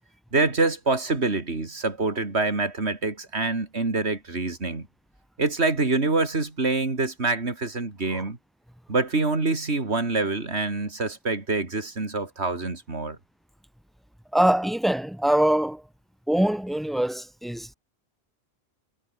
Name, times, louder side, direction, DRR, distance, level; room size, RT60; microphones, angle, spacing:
voice 1, 0.3-4.9 5.4-8.4 8.9-13.2, right 3 dB, 80° right, 3.4 m, -26 dB
voice 2, 14.3-15.8 16.3-17.7, right 1 dB, ahead, 1.4 m, -23 dB
omnidirectional pair, 1.1 m